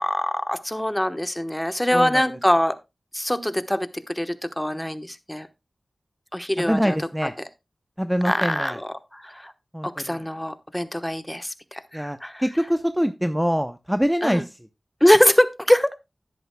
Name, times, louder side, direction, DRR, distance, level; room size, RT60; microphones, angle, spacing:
voice 1, 0.0-2.8 3.1-3.9 4.1-5.5 6.3-7.0 8.2-9.5 9.8-12.4 14.2-14.4 15.0-15.9, left 1 dB, 10° left, 11 dB, 1.1 m, -23 dB
voice 2, 1.9-2.2 6.6-7.3 8.0-8.8 9.7-10.2 11.9-14.5, equal, 5° right, 9 dB, 0.7 m, -24 dB
11.5 x 10.5 x 2.2 m, 0.24 s
cardioid pair, 45°, 0 cm